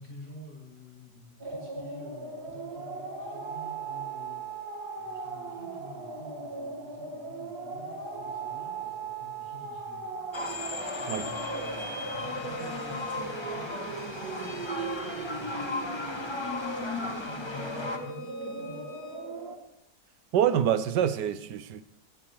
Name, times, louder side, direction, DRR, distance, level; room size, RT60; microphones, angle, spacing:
voice 1, 0.0-4.4 5.0-10.1 11.0-14.7 15.0-18.9, left 1 dB, 35° left, 7.2 m, -48 dB
sound 1, 1.4-19.6, right 3 dB, 65° right, 2.4 m, -38 dB
sound 2, 10.3-18.0, left 2 dB, 15° left, 1.2 m, -36 dB
Bowed string instrument, 12.0-19.2, left 5 dB, 70° left, 5.3 m, -52 dB
voice 2, 20.3-21.8, right 9 dB, 85° right, 1.4 m, -26 dB
22.0 x 14.0 x 3.2 m
omnidirectional pair, 1.8 m